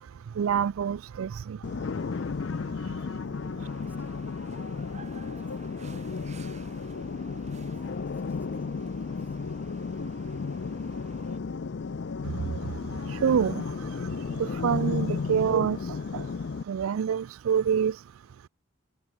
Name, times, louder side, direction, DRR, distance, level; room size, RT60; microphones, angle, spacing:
voice 1, 0.0-3.0 12.2-18.5, right 7 dB, 85° right, 0.4 m, -29 dB
sound 1, 1.6-16.6, left 5 dB, 55° left, 0.4 m, -34 dB
sound 2, 1.8-14.4, left 3 dB, 80° left, 2.6 m, -46 dB
voice 2, 2.9-3.2 3.6-4.3 5.4-6.7 7.6-9.4, right 1 dB, 10° right, 7.9 m, -61 dB
sound 3, 3.6-11.4, right 4 dB, 35° right, 3.9 m, -52 dB
head